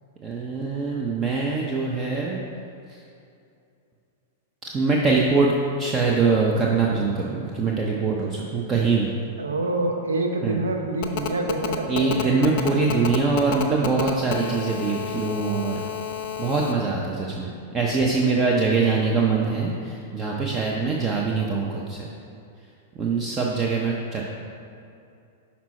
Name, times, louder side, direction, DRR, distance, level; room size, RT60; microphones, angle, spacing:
voice 1, 0.2-2.4 2.9-3.0 4.7-5.5 5.8-9.1 10.4-10.6 11.9-15.8 16.4-22.0 23.0-24.2, right 4 dB, 25° right, -2 dB, 0.6 m, -23 dB
voice 2, 9.4-12.4, right 2 dB, 85° right, 2 dB, 0.7 m, -26 dB
Telephone, 11.0-16.7, left 9 dB, 50° left, 0.5 m, -30 dB
6.0 x 4.2 x 4.2 m, 2.6 s
hypercardioid pair, 100°, 0 cm